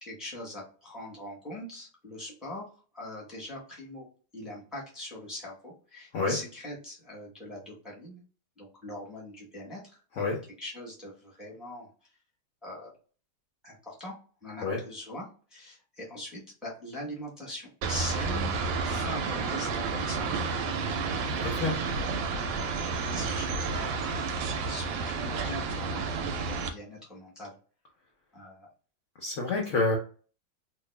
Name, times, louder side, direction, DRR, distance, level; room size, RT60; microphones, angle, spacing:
voice 1, 0.0-2.7 2.9-4.1 4.3-8.2 8.6-10.0 10.6-11.9 12.6-12.9 13.6-18.6 18.8-20.5 21.8-21.9 23.0-23.9 24.7-27.5 28.3-28.7, left 1 dB, ahead, -4 dB, 0.9 m, -42 dB
sound 1, 17.8-26.7, right 4 dB, 75° right, 1.2 m, -31 dB
voice 2, 21.3-21.8 29.2-30.0, left 3 dB, 70° left, 0 dB, 0.7 m, -28 dB
3.1 x 2.3 x 3.2 m, 0.38 s
omnidirectional pair, 2.2 m